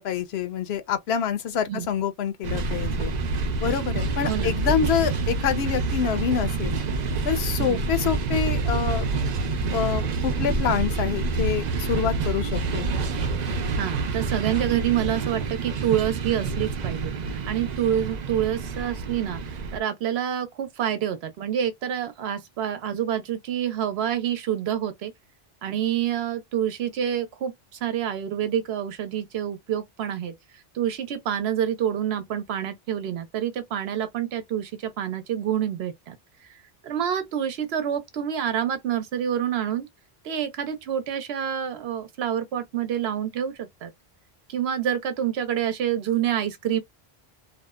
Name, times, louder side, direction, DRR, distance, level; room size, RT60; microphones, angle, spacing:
voice 1, 0.0-3.1 3.6-6.7 7.2-9.1 9.7-12.9, left 8 dB, 80° left, 0.8 m, -26 dB
sound 1, 2.4-19.8, right 3 dB, 55° right, 0.6 m, -27 dB
voice 2, 4.2-4.6 7.6-7.8 13.7-19.4 19.7-25.1 25.6-27.5 27.8-30.3 30.7-36.2 36.8-39.9 40.2-43.9 44.5-46.8, right 10 dB, 85° right, 0.8 m, -27 dB
2.7 x 2.1 x 2.2 m
omnidirectional pair, 1.1 m